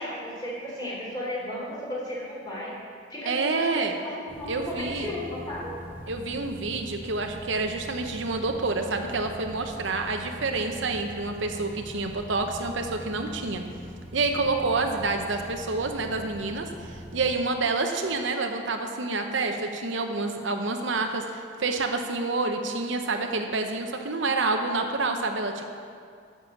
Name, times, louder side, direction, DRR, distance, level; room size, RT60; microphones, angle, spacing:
voice 1, 0.0-2.7 3.1-5.7, left 1 dB, 20° left, -6 dB, 3.3 m, -34 dB
voice 2, 3.3-4.0 4.5-5.1 6.1-13.6 14.1-25.6, right 3 dB, 70° right, 4 dB, 0.8 m, -28 dB
sound 1, 4.3-17.3, equal, 10° right, 1.2 m, -43 dB
9.9 x 6.9 x 7.0 m, 2.3 s
head